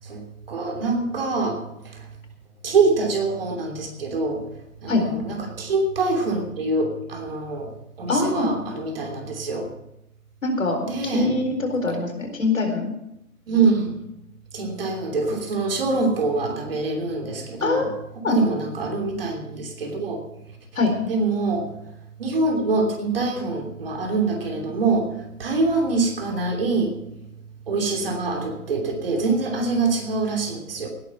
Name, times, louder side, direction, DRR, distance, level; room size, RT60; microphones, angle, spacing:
voice 1, 0.0-2.1 2.6-4.5 4.8-9.7 10.8-11.3 13.5-14.0 14.5-17.9 18.3-20.6 21.0-21.7 22.2-27.0 27.7-30.9, right 3 dB, 40° right, 3 dB, 3.0 m, -25 dB
voice 2, 8.1-8.5 10.4-10.8 11.1-12.9 17.6-17.9 18.2-18.4 20.8-20.9, left 3 dB, 60° left, 4 dB, 4.4 m, -23 dB
18.5 x 10.0 x 5.9 m, 0.85 s
figure-of-eight pair, 155°, 45 cm